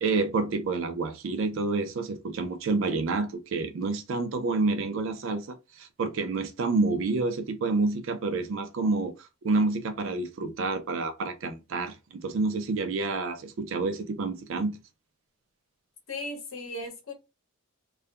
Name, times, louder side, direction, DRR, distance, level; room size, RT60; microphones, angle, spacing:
voice 1, 0.0-14.8, right 3 dB, 60° right, 0.4 m, -28 dB
voice 2, 16.1-17.1, left 2 dB, 75° left, 0.8 m, -36 dB
2.3 x 2.1 x 2.8 m
head